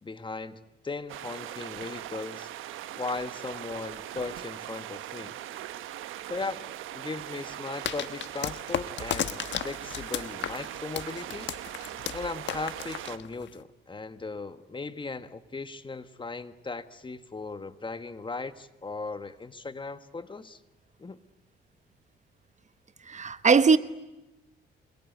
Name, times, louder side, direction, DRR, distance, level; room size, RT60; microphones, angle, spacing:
voice 1, 0.0-2.5 3.0-5.3 6.3-6.6 6.9-11.5 12.1-20.6 21.0-21.2, left 3 dB, 25° left, 1.5 m, -37 dB
sound 1, 1.1-13.2, right 13 dB, 85° right, 1.2 m, -40 dB
sound 2, 7.8-13.6, left 10 dB, 65° left, 1.3 m, -34 dB
voice 2, 23.1-23.8, right 5 dB, 35° right, 1.1 m, -20 dB
27.5 x 21.5 x 9.4 m
cardioid pair, 90°, 20 cm